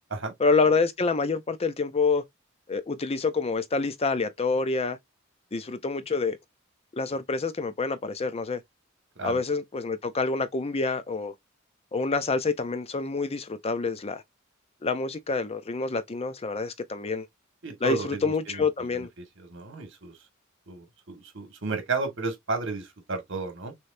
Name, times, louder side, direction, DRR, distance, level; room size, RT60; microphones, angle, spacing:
voice 1, 0.4-2.2 2.7-5.0 5.5-6.4 6.9-8.6 9.2-11.3 11.9-14.2 14.8-17.3 17.8-19.1, left 4 dB, 30° left, 0.5 m, -27 dB
voice 2, 17.6-18.7 19.4-20.1 20.7-23.7, right 3 dB, 65° right, 1.8 m, -33 dB
6.5 x 3.1 x 2.6 m
head